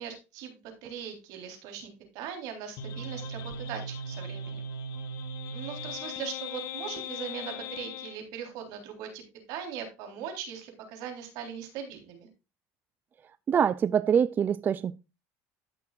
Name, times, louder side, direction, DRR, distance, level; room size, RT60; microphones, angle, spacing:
voice 1, 0.0-4.7 5.5-9.2 9.5-12.3, right 8 dB, 70° right, 3.7 m, -40 dB
sound 1, 2.8-8.2, left 1 dB, 60° left, 1.2 m, -38 dB
voice 2, 13.5-15.0, right 8 dB, 30° right, 0.4 m, -24 dB
14.0 x 6.3 x 2.4 m
supercardioid pair, 120°, 7 cm